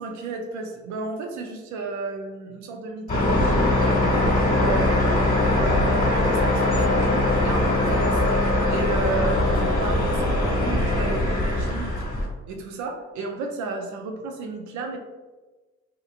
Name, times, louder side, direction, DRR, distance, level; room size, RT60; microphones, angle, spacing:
voice 1, 0.0-4.9 5.4-8.2 8.7-11.9 12.5-15.0, right 3 dB, 75° right, 4 dB, 0.6 m, -33 dB
sound 1, 3.1-12.3, left 1 dB, 30° left, 1.2 m, -21 dB
2.9 x 2.5 x 2.5 m, 1.2 s
supercardioid pair, 70°, 29 cm